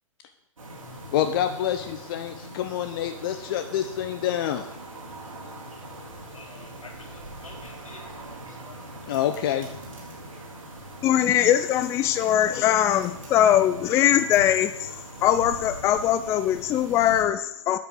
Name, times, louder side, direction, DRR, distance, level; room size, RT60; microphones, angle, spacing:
sound 1, 0.6-17.2, right 1 dB, 75° right, 4.3 m, -41 dB
voice 1, 1.1-4.7 9.1-9.7, left 10 dB, 40° left, 8 dB, 0.7 m, -27 dB
voice 2, 6.3-8.9, left 3 dB, 75° left, 0 dB, 3.1 m, -49 dB
voice 3, 11.0-14.9 15.2-17.8, left 11 dB, 15° left, 12 dB, 0.4 m, -21 dB
9.3 x 8.1 x 6.5 m, 0.87 s
figure-of-eight pair, 115°, 17 cm